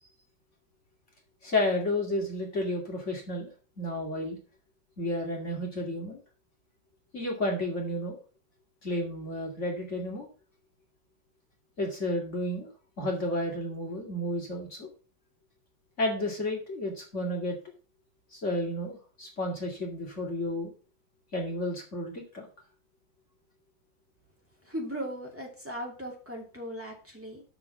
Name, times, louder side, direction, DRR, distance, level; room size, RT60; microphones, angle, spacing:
voice 1, 1.4-3.5 3.8-4.4 5.0-6.2 7.1-8.2 8.8-10.3 11.8-12.7 13.0-14.9 16.0-17.6 18.3-20.7 21.3-22.5, left 1 dB, 35° left, -1 dB, 2.6 m, -31 dB
voice 2, 24.7-27.4, equal, 5° right, -2 dB, 2.7 m, -38 dB
6.7 x 5.9 x 7.1 m, 0.37 s
omnidirectional pair, 2.2 m